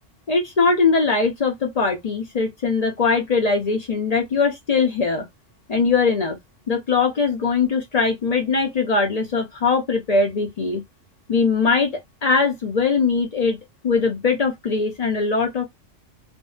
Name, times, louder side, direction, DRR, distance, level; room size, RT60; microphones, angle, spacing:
voice 1, 0.3-5.3 5.7-6.4 6.7-10.8 11.3-11.9 12.2-13.6 13.8-15.6, left 4 dB, 50° left, 0.4 m, -21 dB
2.6 x 2.1 x 2.3 m
omnidirectional pair, 1.3 m